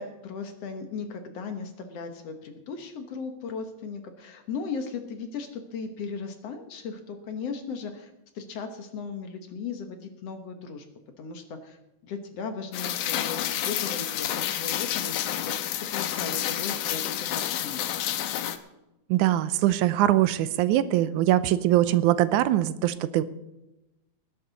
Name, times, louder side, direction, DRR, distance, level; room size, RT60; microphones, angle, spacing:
voice 1, 0.0-8.1 8.4-10.8 11.2-11.8 12.0-17.9, left 5 dB, 60° left, 6 dB, 2.1 m, -37 dB
Rain, 12.7-18.6, left 12 dB, 85° left, 2.4 m, -29 dB
voice 2, 19.1-23.2, right 14 dB, 80° right, 14 dB, 2.0 m, -22 dB
19.5 x 10.5 x 4.0 m, 0.96 s
omnidirectional pair, 3.5 m